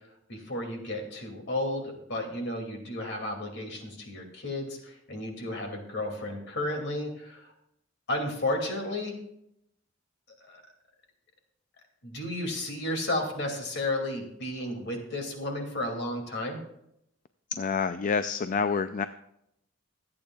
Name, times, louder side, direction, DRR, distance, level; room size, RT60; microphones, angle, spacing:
voice 1, 0.3-7.5 8.1-9.2 10.4-10.6 12.0-16.6, left 1 dB, 60° left, 2 dB, 2.4 m, -33 dB
voice 2, 17.5-19.0, left 5 dB, 40° left, 11 dB, 0.4 m, -28 dB
25.0 x 8.7 x 2.3 m, 0.77 s
head